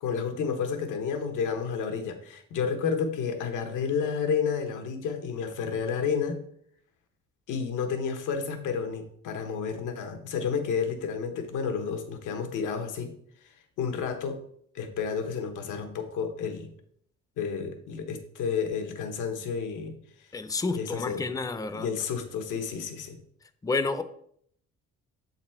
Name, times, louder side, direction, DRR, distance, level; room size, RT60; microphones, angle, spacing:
voice 1, 0.0-6.4 7.5-13.1 13.8-14.4 14.7-16.7 17.4-19.9 20.7-21.3 21.7-23.2, left 6 dB, 80° left, 6 dB, 1.1 m, -31 dB
voice 2, 20.3-21.9 23.6-24.0, left 3 dB, 10° left, 9 dB, 0.5 m, -30 dB
7.4 x 4.1 x 4.3 m, 0.68 s
cardioid pair, 90°, 30 cm